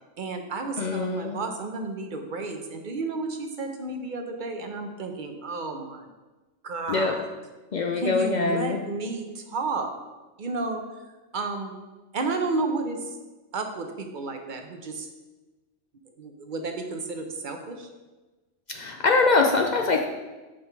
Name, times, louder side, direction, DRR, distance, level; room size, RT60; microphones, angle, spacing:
voice 1, 0.2-6.1 6.6-7.3 8.0-9.9 10.4-10.8 11.3-11.7 12.1-13.2 13.5-15.1 16.2-17.9, right 3 dB, 50° right, 5 dB, 0.7 m, -32 dB
voice 2, 0.8-1.4 6.9-7.1 7.7-8.8 18.7-20.1, left 3 dB, 60° left, 3 dB, 0.4 m, -23 dB
5.7 x 5.1 x 4.6 m, 1.2 s
omnidirectional pair, 1.3 m